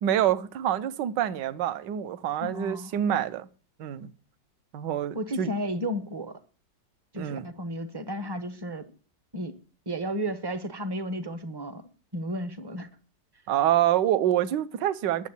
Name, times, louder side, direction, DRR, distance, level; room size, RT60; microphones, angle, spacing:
voice 1, 0.0-3.5 3.8-4.1 4.7-5.5 7.2-7.5 13.5-15.3, right 11 dB, 75° right, 1.4 m, -26 dB
voice 2, 2.4-2.9 5.1-6.4 7.1-8.9 9.3-9.5 9.9-11.8 12.1-12.9, equal, 25° right, 0.5 m, -33 dB
10.5 x 7.1 x 8.2 m
omnidirectional pair, 2.0 m